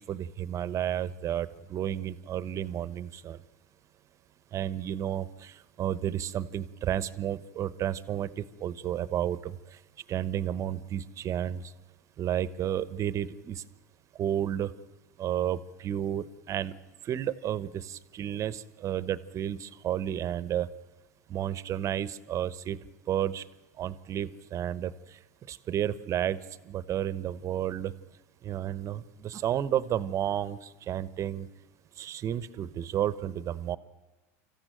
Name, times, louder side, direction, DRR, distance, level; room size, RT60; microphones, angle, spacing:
voice 1, 0.0-3.4 4.5-5.5 5.8-8.3 8.6-9.5 10.1-11.6 12.2-13.6 14.2-14.7 15.2-16.7 17.1-20.7 21.3-22.8 23.1-23.4 23.8-24.9 25.5-26.4 26.7-27.9 28.4-30.6 30.9-31.5 32.0-33.8, right 10 dB, 35° right, 16 dB, 1.0 m, -31 dB
25.5 x 14.5 x 9.1 m, 1.1 s
hypercardioid pair, 105°, 9 cm